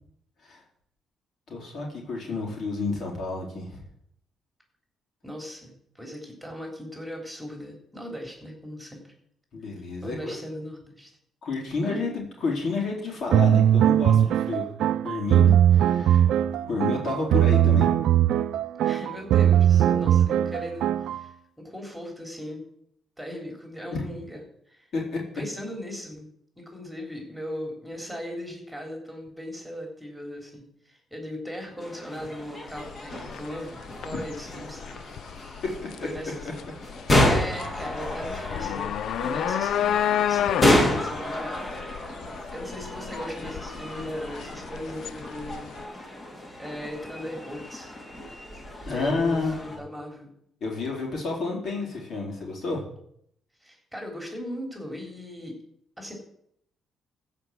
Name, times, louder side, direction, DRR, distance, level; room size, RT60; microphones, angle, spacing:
voice 1, 1.5-3.8 9.5-10.4 11.4-16.3 16.6-17.9 23.9-24.1 24.9-25.2 36.0-36.1 48.9-49.8 50.6-52.8, left 3 dB, 60° left, -2 dB, 4.1 m, -30 dB
voice 2, 5.2-9.0 10.0-11.1 11.8-12.0 18.8-22.7 23.2-24.9 25.3-26.3 26.6-35.6 36.0-36.3 37.3-41.6 42.5-45.8 46.6-48.0 48.9-50.3 53.6-55.6 56.0-56.1, equal, ahead, 1 dB, 3.6 m, -38 dB
sound 1, 13.3-21.2, right 10 dB, 80° right, 0.5 m, -20 dB
sound 2, 31.8-49.8, left 1 dB, 30° left, 3.0 m, -30 dB
sound 3, 32.7-45.8, left 10 dB, 75° left, 0.4 m, -31 dB
15.0 x 5.2 x 7.6 m, 0.71 s
cardioid pair, 90°, 0 cm